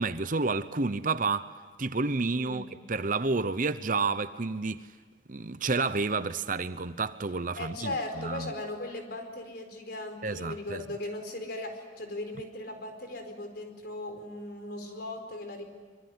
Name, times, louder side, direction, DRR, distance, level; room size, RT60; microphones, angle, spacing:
voice 1, 0.0-1.5 1.8-4.9 5.3-8.5 10.2-10.8, right 3 dB, 45° right, 0.9 m, -30 dB
voice 2, 2.3-2.7 7.6-15.7, left 1 dB, 55° left, 4.7 m, -38 dB
25.0 x 24.0 x 9.8 m
head